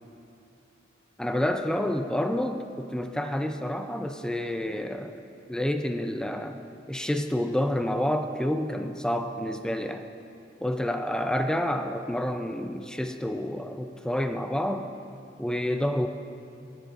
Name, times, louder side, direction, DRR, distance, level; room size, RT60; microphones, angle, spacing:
voice 1, 1.2-5.2 5.5-6.6 6.9-10.0 10.6-14.9 15.4-16.1, left 1 dB, 5° left, 6 dB, 0.4 m, -29 dB
24.5 x 10.5 x 2.5 m, 2.7 s
head